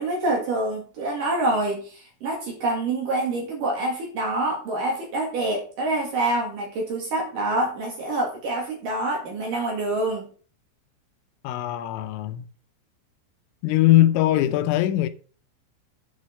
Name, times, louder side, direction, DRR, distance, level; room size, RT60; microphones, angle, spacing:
voice 1, 0.0-10.2, right 2 dB, 55° right, 2.7 m, -26 dB
voice 2, 11.4-12.4 13.6-15.1, left 14 dB, 85° left, 3.2 m, -20 dB
8.4 x 6.5 x 5.6 m
omnidirectional pair, 5.9 m